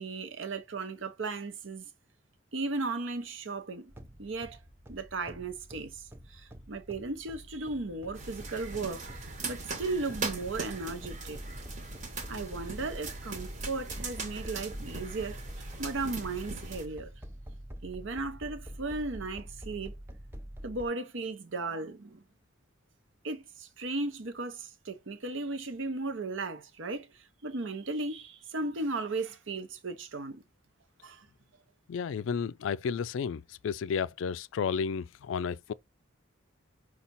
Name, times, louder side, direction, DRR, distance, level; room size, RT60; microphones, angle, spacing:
voice 1, 0.0-1.9 2.5-3.9 4.2-4.6 4.9-6.0 6.3-9.0 9.4-11.4 12.3-17.1 17.8-19.9 20.6-22.2 23.2-27.1 27.4-30.4 31.0-31.3, right 3 dB, 70° right, 0.8 m, -36 dB
sound 1, 3.9-20.9, equal, 10° right, 0.5 m, -46 dB
sound 2, 8.2-16.9, right 3 dB, 40° right, 1.0 m, -40 dB
voice 2, 31.9-35.7, left 6 dB, 70° left, 0.3 m, -32 dB
5.7 x 2.4 x 3.9 m
head